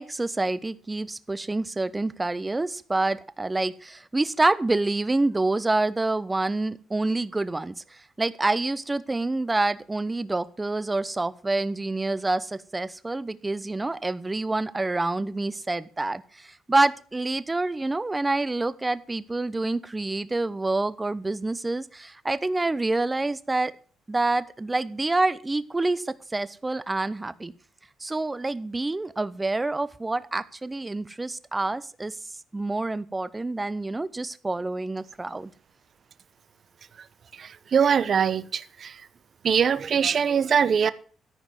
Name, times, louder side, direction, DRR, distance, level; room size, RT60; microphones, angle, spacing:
voice 1, 0.0-7.7 8.2-23.7 24.1-27.5 28.0-32.1 32.5-35.5, right 2 dB, 20° right, 0.8 m, -27 dB
voice 2, 37.3-39.0 39.4-40.9, right 7 dB, 50° right, 0.8 m, -23 dB
13.5 x 5.2 x 7.7 m
cardioid pair, 90°, 0 cm